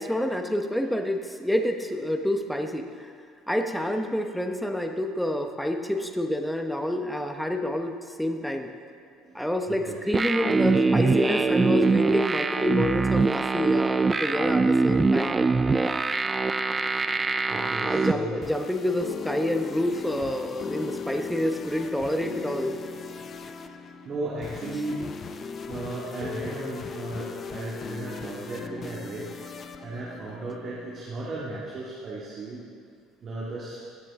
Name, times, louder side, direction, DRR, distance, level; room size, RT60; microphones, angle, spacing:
voice 1, 0.0-3.1 3.5-8.7 9.3-15.4 17.8-22.7, left 1 dB, 5° left, 5 dB, 1.0 m, -28 dB
voice 2, 9.1-10.0 17.5-18.3 20.7-20.8 23.1-23.7 24.0-25.0 25.7-29.3 29.8-32.6 33.2-33.8, right 2 dB, 45° right, -7 dB, 2.2 m, -35 dB
sound 1, 10.1-18.1, right 4 dB, 25° right, 0.4 m, -23 dB
sound 2, 18.2-31.0, left 5 dB, 40° left, 0.7 m, -38 dB
16.5 x 7.5 x 3.7 m, 2.3 s
hypercardioid pair, 70°, 0 cm